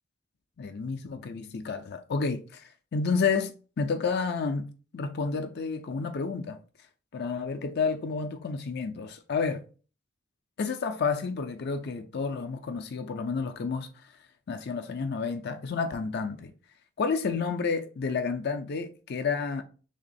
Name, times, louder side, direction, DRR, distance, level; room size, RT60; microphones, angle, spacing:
voice 1, 0.6-4.7 4.9-6.6 7.1-9.6 10.6-14.1 14.5-16.5 17.0-19.6, left 5 dB, 50° left, 0.4 m, -30 dB
3.5 x 2.9 x 4.0 m
head